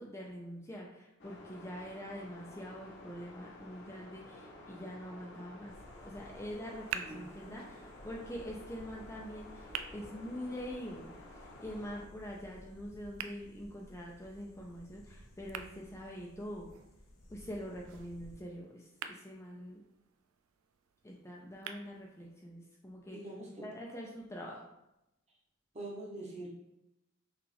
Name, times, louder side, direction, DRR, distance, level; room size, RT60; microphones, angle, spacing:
voice 1, 0.0-5.7 6.0-11.1 11.4-16.7 17.3-19.8 21.0-23.2 23.6-24.6, equal, 15° left, -2 dB, 0.4 m, -44 dB
sound 1, 1.2-12.1, left 1 dB, 55° left, 0.8 m, -52 dB
sound 2, 5.7-18.4, left 1 dB, 85° left, 0.8 m, -56 dB
sound 3, 6.5-22.5, right 8 dB, 75° right, 0.3 m, -50 dB
voice 2, 7.0-7.6 23.1-23.7 25.7-26.5, right 2 dB, 30° right, -3 dB, 1.0 m, -44 dB
5.9 x 2.4 x 3.3 m, 0.89 s
head